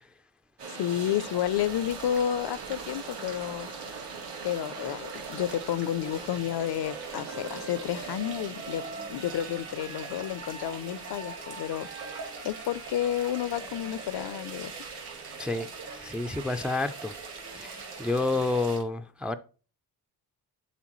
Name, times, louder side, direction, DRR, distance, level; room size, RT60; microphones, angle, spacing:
sound 1, 0.6-18.8, right 5 dB, 90° right, 2.4 m, -43 dB
voice 1, 0.7-3.7 4.4-8.8 9.1-11.9 12.4-14.7, left 11 dB, 75° left, 0.6 m, -31 dB
sound 2, 0.9-18.8, right 4 dB, 65° right, 2.4 m, -45 dB
Wind instrument woodwind instrument, 6.0-15.8, right 4 dB, 40° right, 1.0 m, -46 dB
voice 2, 15.4-17.1 17.5-19.4, left 2 dB, 5° right, 0.3 m, -30 dB
11.0 x 4.4 x 3.0 m
wide cardioid pair, 175°, 41 cm